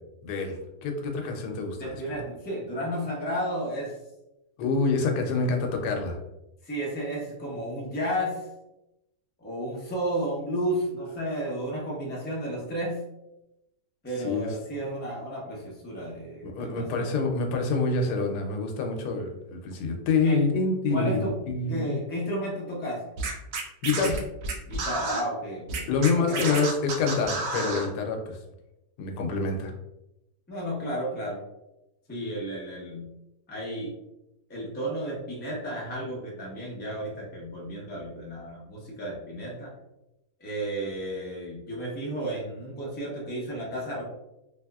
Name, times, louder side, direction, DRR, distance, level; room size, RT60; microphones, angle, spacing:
voice 1, 0.2-2.2 4.6-6.2 14.2-14.5 16.4-22.0 23.8-24.2 25.9-28.4 29.0-29.7, left 4 dB, 85° left, 2 dB, 1.2 m, -27 dB
voice 2, 1.8-4.0 6.6-8.5 9.4-13.0 14.0-17.1 20.2-20.4 20.9-21.3 21.7-23.0 24.7-25.9 26.2-26.4 30.5-31.4 32.1-33.1 33.5-33.9 34.5-39.7 40.4-44.0, equal, 10° left, -4 dB, 0.5 m, -32 dB
Scratching (performance technique), 23.2-25.2 25.7-27.9, right 3 dB, 65° right, 0.9 m, -30 dB
3.3 x 2.9 x 2.3 m, 0.91 s
omnidirectional pair, 1.7 m